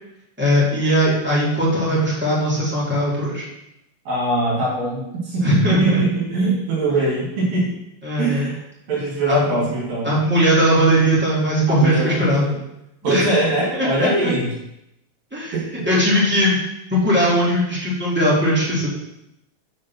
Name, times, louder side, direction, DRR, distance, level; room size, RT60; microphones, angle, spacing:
voice 1, 0.4-3.4 5.4-6.0 8.0-8.5 9.3-9.4 10.0-12.5 13.0-13.3 13.7-14.3 15.3-15.5 15.8-16.6 16.9-18.9, equal, 5° right, -7 dB, 1.3 m, -19 dB
voice 2, 4.1-7.7 8.2-8.6 8.9-10.2 11.7-12.6 13.0-14.5 15.5-15.9, right 2 dB, 65° right, -6 dB, 4.1 m, -22 dB
6.7 x 5.3 x 5.9 m, 0.86 s
omnidirectional pair, 4.5 m